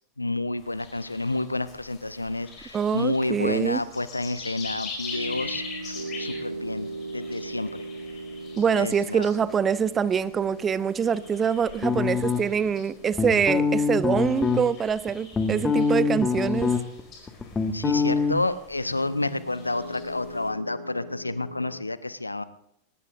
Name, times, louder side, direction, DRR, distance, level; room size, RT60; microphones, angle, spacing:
voice 1, 0.2-7.9 8.7-9.3 17.7-22.4, left 2 dB, 85° left, 16 dB, 0.7 m, -30 dB
sound 1, 0.6-20.5, left 4 dB, 30° left, 5.1 m, -44 dB
voice 2, 2.7-3.8 8.6-16.7, right 7 dB, 20° right, 16 dB, 0.7 m, -24 dB
sound 2, 5.1-17.5 18.8-21.8, right 2 dB, 85° right, 1.6 m, -41 dB
sound 3, 11.8-12.7 13.1-14.6 15.1-17.0 17.3-18.3, left 5 dB, 15° left, 1.7 m, -24 dB
21.0 x 19.5 x 2.5 m, 0.77 s
figure-of-eight pair, 90°, 0 cm